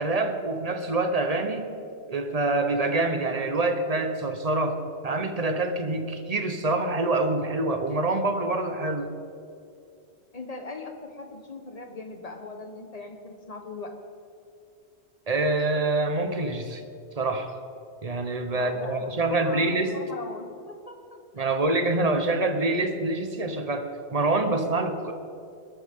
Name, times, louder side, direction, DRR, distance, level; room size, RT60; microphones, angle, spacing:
voice 1, 0.0-1.7 2.1-9.1 15.3-16.8 17.2-17.5 18.0-19.9 21.4-25.1, right 2 dB, 35° right, 6 dB, 1.2 m, -26 dB
voice 2, 10.3-14.0 18.5-21.5, left 3 dB, 35° left, 4 dB, 1.4 m, -40 dB
20.5 x 12.5 x 3.8 m, 2.5 s
omnidirectional pair, 1.1 m